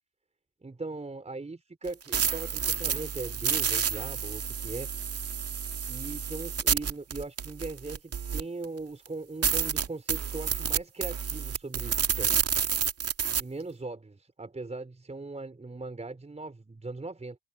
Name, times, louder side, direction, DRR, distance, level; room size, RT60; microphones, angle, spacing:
voice 1, 0.6-4.9 5.9-12.3 13.4-17.4, right 3 dB, 15° right, 4.1 m, -39 dB
sound 1, 1.9-8.6 9.1-9.2 9.4-13.4, right 7 dB, 30° right, 2.1 m, -29 dB
open air
hypercardioid pair, 85°, 47 cm